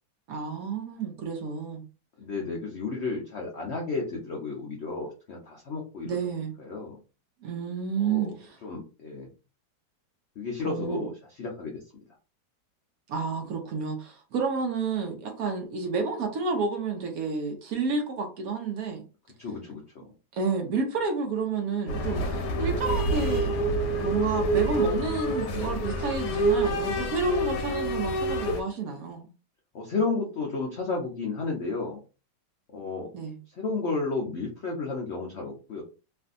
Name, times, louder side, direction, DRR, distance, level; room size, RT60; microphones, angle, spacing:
voice 1, 0.3-1.8 6.0-6.5 7.4-8.6 10.6-11.1 13.1-19.0 20.3-23.5 24.0-29.3 33.1-33.4, right 4 dB, 70° right, 0.9 m, -30 dB
voice 2, 2.2-6.2 6.6-7.0 8.0-8.3 8.6-9.3 10.4-11.8 19.4-20.1 29.7-32.0 32.7-33.1 33.5-35.8, left 3 dB, 85° left, 0.6 m, -32 dB
sound 1, 21.9-28.6, right 1 dB, 65° left, 1.2 m, -27 dB
3.2 x 2.6 x 2.5 m
omnidirectional pair, 2.1 m